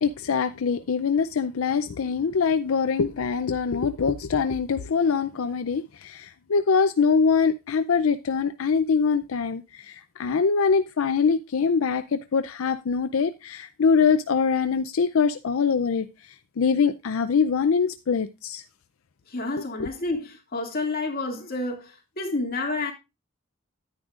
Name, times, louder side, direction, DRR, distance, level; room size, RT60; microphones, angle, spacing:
voice 1, 0.0-16.1 16.6-18.6 19.8-19.9, left 5 dB, 85° left, 0.5 m, -23 dB
voice 2, 19.3-22.9, left 2 dB, 45° left, 2.3 m, -29 dB
10.5 x 9.8 x 2.4 m
head